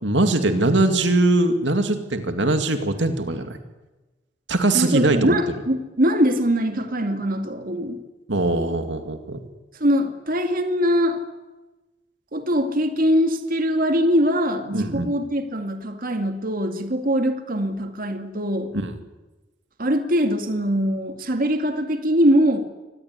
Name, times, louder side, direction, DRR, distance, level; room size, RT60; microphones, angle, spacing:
voice 1, 0.0-3.6 4.5-5.4 8.3-9.4 14.7-15.1 18.7-19.0, right 2 dB, 80° right, 7 dB, 2.4 m, -21 dB
voice 2, 4.7-8.0 9.7-11.2 12.3-18.7 19.8-22.6, equal, 50° right, 6 dB, 2.3 m, -22 dB
25.5 x 19.5 x 9.6 m, 1.1 s
head